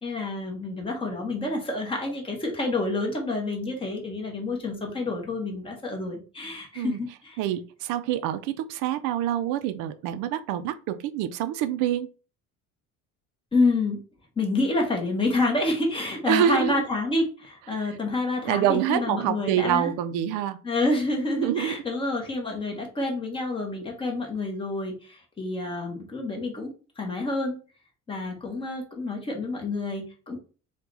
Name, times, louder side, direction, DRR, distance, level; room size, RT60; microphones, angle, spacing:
voice 1, 0.0-7.4 13.5-14.0 14.4-19.9 20.6-26.7 27.0-27.6 28.1-30.4, left 2 dB, 15° left, 1 dB, 1.0 m, -28 dB
voice 2, 7.4-12.1 16.3-16.8 17.7-17.9 18.4-20.6 21.4-21.7, right 11 dB, 75° right, 11 dB, 0.5 m, -26 dB
4.7 x 2.3 x 3.9 m, 0.36 s
cardioid pair, 175°, 32 cm